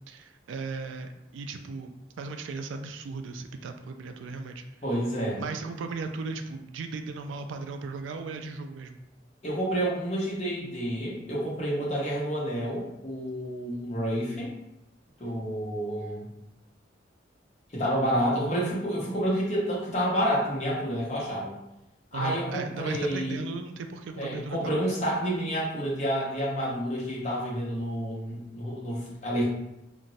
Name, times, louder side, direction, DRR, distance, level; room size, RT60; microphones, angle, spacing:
voice 1, 0.1-4.6 5.4-9.0 22.1-24.7, right 4 dB, 90° right, 6 dB, 0.3 m, -36 dB
voice 2, 4.8-5.4 9.4-14.5 15.2-16.3 17.7-21.5 22.1-23.4 24.2-29.4, equal, 35° left, -6 dB, 0.9 m, -29 dB
2.5 x 2.0 x 3.9 m, 0.88 s
head